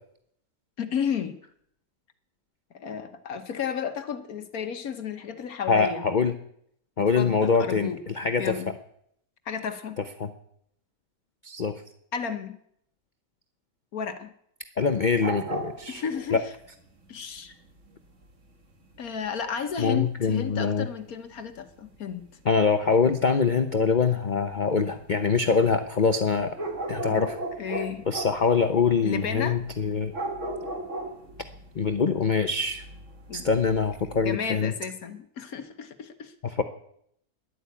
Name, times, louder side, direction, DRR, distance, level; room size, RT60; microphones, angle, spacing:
voice 1, 0.8-1.4 2.7-6.0 7.2-8.0 8.4-8.7 9.5-10.0 12.1-12.6 13.9-14.3 15.9-16.5 17.1-17.5 19.0-22.2 27.1-27.2 27.6-28.1 29.0-29.6 33.3-33.5 34.1-36.3, left 7 dB, 65° left, 8 dB, 1.5 m, -33 dB
voice 2, 5.7-6.3 7.0-8.5 10.2-10.3 11.4-11.7 14.8-16.0 16.3-16.4 19.8-20.9 22.4-26.6 26.9-27.4 28.1-30.1 31.7-32.8 33.3-34.7 36.4-36.6, left 5 dB, 40° left, 8 dB, 0.7 m, -24 dB
sound 1, 15.2-22.3 22.6-34.3, right 2 dB, 50° right, 2.1 m, -37 dB
12.5 x 11.0 x 8.5 m, 0.71 s
omnidirectional pair, 1.7 m